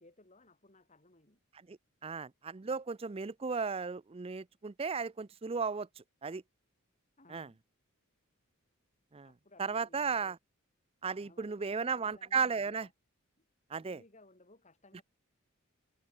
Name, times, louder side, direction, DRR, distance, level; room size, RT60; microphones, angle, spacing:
voice 1, 0.0-1.4 7.2-7.6 9.2-10.4 11.2-12.9 13.4-13.5 13.8-15.0, left 2 dB, 35° left, 3.3 m, -60 dB
voice 2, 2.0-5.9 6.2-6.4 7.3-7.5 9.1-9.3 9.6-10.4 11.0-12.9 13.7-14.0, right 5 dB, 25° right, 0.5 m, -35 dB
head